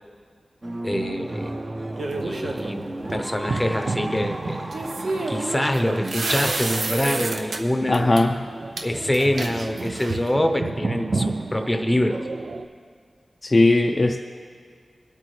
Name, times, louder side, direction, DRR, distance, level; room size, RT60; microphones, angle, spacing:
sound 1, 0.6-6.1, right 1 dB, 35° right, 0.9 m, -34 dB
voice 1, 0.8-1.5 2.2-4.7 5.3-8.2 8.8-12.3, left 1 dB, 10° left, 5 dB, 0.8 m, -25 dB
sound 2, 0.9-12.7, right 3 dB, 55° right, 0.5 m, -33 dB
sound 3, 2.0-2.7 4.7-7.6 7.9-8.2 8.8-8.9 9.1-10.3, right 2 dB, 80° right, 0.8 m, -29 dB
voice 2, 7.9-8.4 13.4-14.2, left 2 dB, 35° left, 2 dB, 0.4 m, -18 dB
22.5 x 8.6 x 3.3 m, 2.1 s
wide cardioid pair, 115°, 0 cm